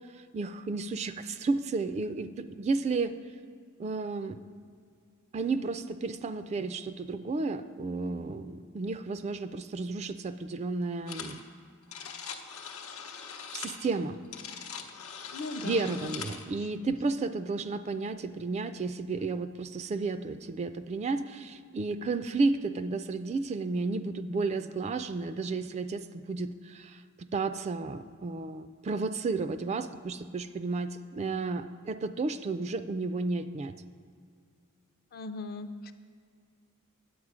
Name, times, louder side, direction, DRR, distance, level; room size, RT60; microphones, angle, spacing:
voice 1, 0.1-3.1 3.8-4.4 5.3-11.4 13.5-14.2 15.6-33.7, right 3 dB, 30° right, 11 dB, 0.3 m, -32 dB
sound 1, 11.1-11.4 11.7-16.5, left 6 dB, 90° left, 0.9 m, -41 dB
voice 2, 15.3-16.1 16.8-16.9 35.1-35.9, left 2 dB, 45° left, 8 dB, 0.5 m, -39 dB
9.5 x 8.0 x 4.9 m, 2.2 s
head